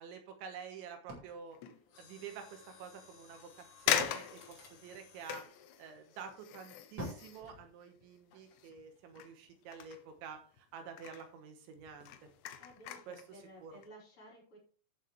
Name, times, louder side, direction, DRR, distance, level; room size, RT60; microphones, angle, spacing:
voice 1, 0.0-1.6 2.0-5.4 5.8-12.3 13.1-13.7, right 6 dB, 75° right, 6 dB, 3.2 m, -49 dB
sound 1, 1.1-2.6 3.5-5.5 7.0-8.6, right 1 dB, 30° right, 2.0 m, -49 dB
sound 2, 1.5-1.9 2.4-2.5 3.3-3.4 3.9-8.9 9.1-10.6 10.9-11.3 11.8-13.3 13.7-13.9, left 10 dB, 75° left, 2.7 m, -40 dB
Mechanisms, 1.9-6.8 7.4-7.7 8.3-8.6 9.0-9.1, left 5 dB, 60° left, 5.2 m, -60 dB
voice 2, 12.6-14.6, equal, 35° left, -6 dB, 5.8 m, -55 dB
13.5 x 6.5 x 3.4 m, 0.41 s
omnidirectional pair, 5.8 m